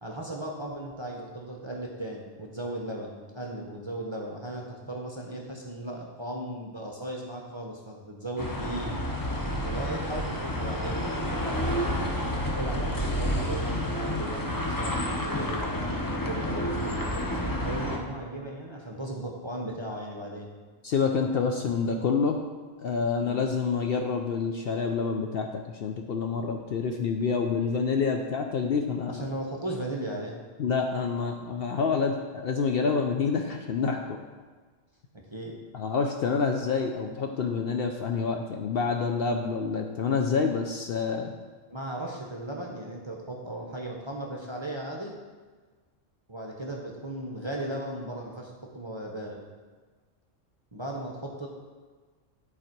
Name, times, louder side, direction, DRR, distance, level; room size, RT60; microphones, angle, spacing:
voice 1, 0.0-8.9 9.6-17.2 17.6-20.5 23.2-23.4 29.1-30.4 35.3-35.6 41.7-45.2 46.3-49.4 50.7-51.5, right 1 dB, 25° right, -1 dB, 0.7 m, -36 dB
sound 1, 8.4-18.0, equal, 20° left, 0.6 m, -30 dB
voice 2, 20.8-22.4 22.8-29.2 30.6-34.2 35.7-41.3, left 5 dB, 60° left, 3 dB, 0.7 m, -27 dB
10.5 x 4.1 x 4.5 m, 1.4 s
omnidirectional pair, 1.3 m